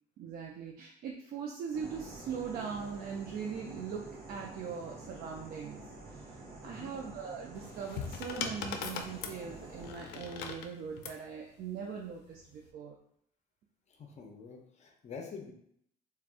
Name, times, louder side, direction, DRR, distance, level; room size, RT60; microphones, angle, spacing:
voice 1, 0.2-13.0, right 6 dB, 60° right, 0 dB, 0.4 m, -41 dB
sound 1, 1.7-9.9, right 2 dB, 35° right, 0.8 m, -48 dB
voice 2, 6.6-6.9 13.9-15.5, left 5 dB, 40° left, 2 dB, 0.6 m, -47 dB
sound 2, 7.5-11.2 12.3-12.7, left 6 dB, 85° left, 0.4 m, -40 dB
3.3 x 2.2 x 2.5 m, 0.69 s
cardioid pair, 110°, 17 cm